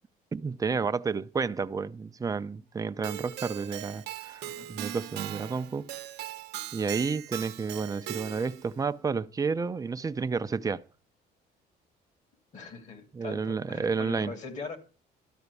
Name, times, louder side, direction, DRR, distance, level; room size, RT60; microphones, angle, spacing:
voice 1, 0.3-5.9 6.7-10.8 13.1-14.3, right 5 dB, 20° right, 0.6 m, -31 dB
Keyboard (musical), 3.0-8.7, right 13 dB, 80° right, 0.8 m, -39 dB
voice 2, 4.4-4.8 12.5-14.8, left 4 dB, 45° left, 2.3 m, -41 dB
12.5 x 4.3 x 8.3 m
cardioid pair, 110°, 17 cm